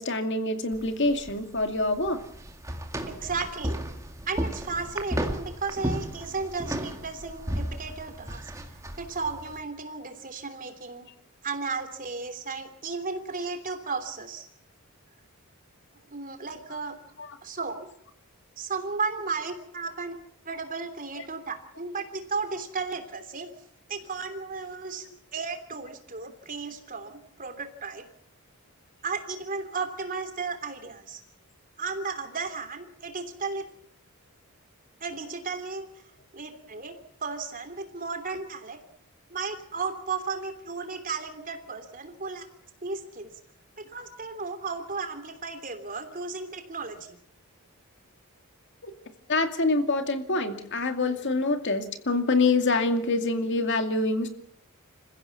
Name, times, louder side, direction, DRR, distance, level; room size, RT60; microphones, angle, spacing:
voice 1, 0.0-2.2 17.2-17.3 21.2-21.3 48.8-48.9 49.3-54.3, left 3 dB, 55° left, 7 dB, 2.3 m, -26 dB
sound 1, 0.7-9.6, right 1 dB, 15° right, 2.2 m, -34 dB
voice 2, 3.1-3.8 4.3-8.5 9.0-11.1 11.4-14.5 16.1-17.0 17.4-17.9 18.6-20.1 20.4-23.5 23.9-25.0 25.3-28.0 29.0-31.2 31.8-33.7 35.0-35.9 36.3-38.8 39.3-42.5 42.8-43.3 43.8-47.2, right 4 dB, 40° right, 8 dB, 3.1 m, -34 dB
27.5 x 15.5 x 7.1 m, 0.71 s
head